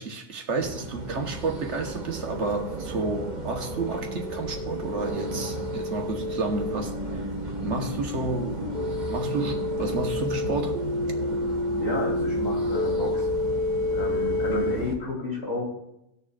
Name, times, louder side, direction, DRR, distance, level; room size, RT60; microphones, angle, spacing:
voice 1, 0.0-7.0 7.6-8.7 9.1-10.8, right 3 dB, 75° right, 1.5 m, -30 dB
sound 1, 0.6-15.0, right 3 dB, 40° right, 1.3 m, -36 dB
sound 2, 1.6-14.8, left 2 dB, 55° left, 1.5 m, -30 dB
voice 2, 11.8-13.4 13.9-15.6, left 1 dB, 75° left, 3.6 m, -31 dB
18.5 x 6.8 x 2.4 m
omnidirectional pair, 1.2 m